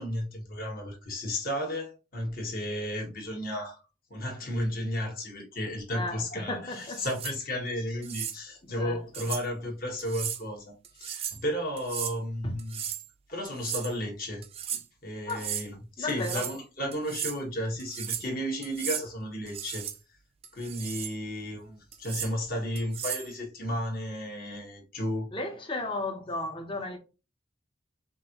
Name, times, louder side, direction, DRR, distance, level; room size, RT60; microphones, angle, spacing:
voice 1, 0.0-3.8 4.1-12.8 13.3-14.4 14.7-19.8 20.5-25.3, equal, 45° left, 1.4 m, -33 dB
voice 2, 5.9-7.1 8.8-9.3 12.4-12.5 15.3-15.5 16.0-16.5 25.3-27.0, left 2 dB, 25° left, 0.8 m, -34 dB
sound 1, 6.8-7.4 8.0-8.4 9.1-9.4 10.0-10.4 10.8-11.4 11.8-12.2 12.6-13.1 13.4-13.9 14.4-14.8 15.3-15.7 16.1-16.6 16.9-17.4 17.8-18.3 18.6-19.1 19.5-20.0 20.4-21.1 21.9-22.3 22.8-23.3, right 9 dB, 30° right, 0.4 m, -36 dB
5.2 x 2.6 x 2.9 m
head